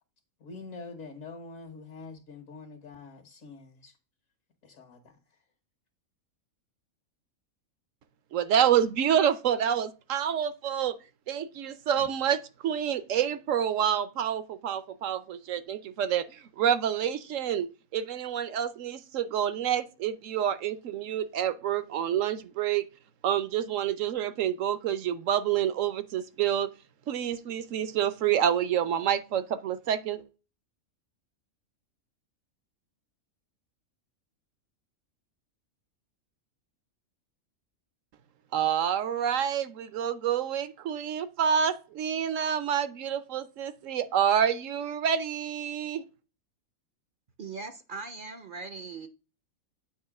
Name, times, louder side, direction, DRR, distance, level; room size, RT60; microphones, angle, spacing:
voice 1, 0.4-4.0 4.6-5.2, left 4 dB, 70° left, 1.7 m, -45 dB
voice 2, 8.3-11.0 11.3-22.9 23.2-26.7 27.1-30.3 38.5-46.0, right 9 dB, 70° right, 1.0 m, -28 dB
voice 3, 47.4-49.1, right 4 dB, 50° right, 0.7 m, -40 dB
8.7 x 3.0 x 5.9 m
omnidirectional pair, 1.5 m